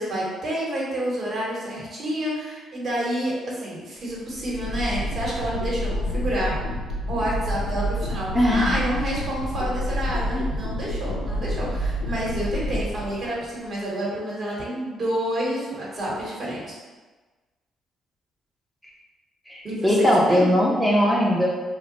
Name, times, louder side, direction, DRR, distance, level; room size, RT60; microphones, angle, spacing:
voice 1, 0.0-6.5 7.1-16.8 19.6-20.5, right 1 dB, 55° right, -5 dB, 1.1 m, -29 dB
sound 1, 4.1-13.6, equal, 85° left, 0.4 m, -29 dB
voice 2, 8.3-8.8 19.5-21.5, equal, 5° left, -4 dB, 0.6 m, -20 dB
2.2 x 2.1 x 3.8 m, 1.3 s
supercardioid pair, 70°, 0 cm